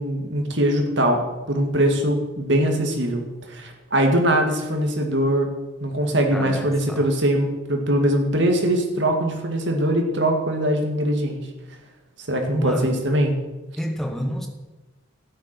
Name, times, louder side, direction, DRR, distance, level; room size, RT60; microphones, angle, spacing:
voice 1, 0.0-3.2 3.5-5.5 5.8-11.4 12.3-13.3, right 1 dB, 65° right, 3 dB, 2.2 m, -22 dB
voice 2, 6.3-7.1 12.5-13.0 13.8-14.5, equal, ahead, 3 dB, 1.3 m, -28 dB
12.5 x 9.8 x 6.0 m, 1.1 s
head